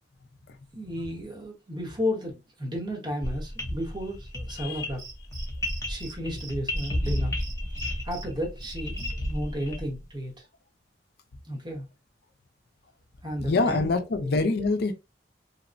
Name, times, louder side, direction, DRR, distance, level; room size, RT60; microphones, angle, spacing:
voice 1, 0.7-5.0 5.9-7.4 8.0-10.3 11.5-11.9 13.2-13.9, equal, 25° right, 1.0 m, -33 dB
sound 1, 3.2-10.0, left 1 dB, 20° left, 0.6 m, -32 dB
Cricket, 5.0-6.1 6.4-6.5 6.8-8.2 8.6-9.1, right 4 dB, 45° right, 1.5 m, -43 dB
voice 2, 13.5-14.9, left 3 dB, 65° left, 0.4 m, -25 dB
2.9 x 2.0 x 2.5 m
head